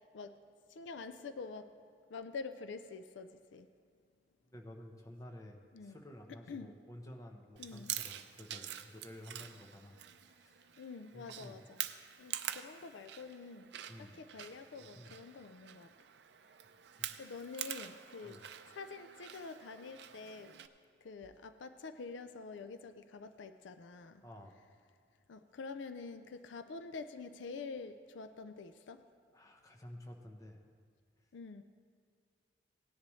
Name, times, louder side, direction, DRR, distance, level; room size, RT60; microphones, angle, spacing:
voice 1, 0.7-1.7 2.1-3.7 5.7-6.0 6.5-6.7 7.6-7.9 10.8-11.8 12.2-13.7 14.0-15.9 17.2-20.5 21.0-24.2 25.3-29.0 31.3-31.6, left 4 dB, 80° left, 10 dB, 0.5 m, -47 dB
voice 2, 4.5-10.0 10.3-10.7 11.1-11.6 13.9-14.2 14.8-15.2 17.0-17.1 18.2-18.4 24.2-24.6 29.3-30.6, left 1 dB, 20° left, 2 dB, 0.9 m, -52 dB
Chewing mastication, 7.6-20.7, right 11 dB, 65° right, 0.5 m, -46 dB
17.0 x 10.5 x 3.2 m, 2.2 s
head